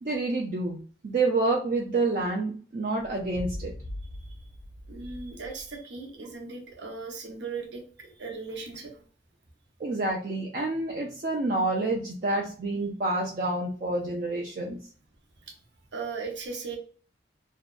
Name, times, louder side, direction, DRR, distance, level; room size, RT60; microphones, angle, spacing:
voice 1, 0.0-3.7 9.8-14.8, right 2 dB, 45° right, 0 dB, 0.4 m, -28 dB
sound 1, 3.0-5.8, left 1 dB, 50° left, 0.3 m, -41 dB
voice 2, 4.9-9.0 15.5-15.6 15.9-16.8, right 4 dB, 85° right, 1 dB, 0.7 m, -38 dB
2.6 x 2.1 x 2.3 m, 0.42 s
head